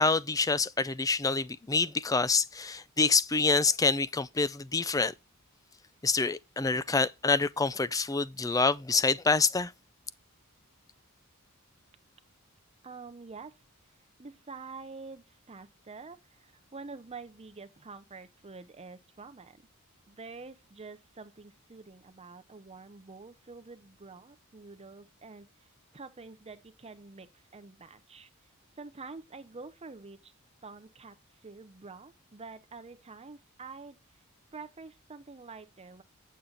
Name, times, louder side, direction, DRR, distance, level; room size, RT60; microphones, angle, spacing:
voice 1, 0.0-5.1 6.0-9.7, left 4 dB, 15° left, 0.4 m, -27 dB
voice 2, 12.8-13.6 13.9-19.6 20.1-28.3 28.8-30.3 30.6-34.0 34.5-36.0, right 4 dB, 30° right, 0.7 m, -47 dB
8.4 x 7.3 x 3.8 m
head